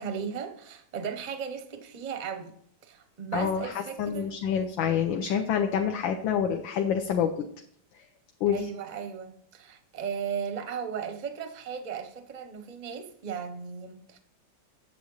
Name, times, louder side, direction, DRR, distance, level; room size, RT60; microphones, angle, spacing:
voice 1, 0.0-2.5 2.8-4.3 8.5-14.2, right 7 dB, 45° right, 0.5 m, -36 dB
voice 2, 3.3-7.5 7.9-8.0 8.4-8.7, left 8 dB, 75° left, 1.4 m, -27 dB
8.5 x 7.1 x 3.9 m
omnidirectional pair, 2.2 m